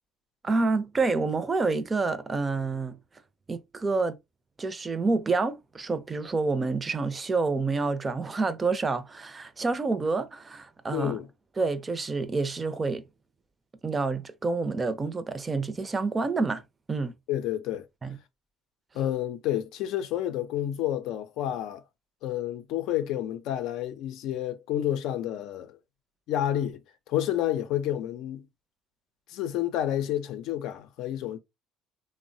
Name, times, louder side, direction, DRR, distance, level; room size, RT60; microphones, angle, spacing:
voice 1, 0.4-3.0 3.5-4.2 4.6-11.2 11.6-13.0 13.8-16.6 16.9-17.1 18.0-18.2, right 3 dB, 25° right, 0.5 m, -28 dB
voice 2, 10.9-11.3 17.3-17.9 18.9-21.8 22.2-25.8 26.3-26.8 27.1-28.4 29.3-31.4, left 11 dB, 70° left, 0.4 m, -29 dB
3.0 x 2.0 x 2.6 m
supercardioid pair, 80°, 0 cm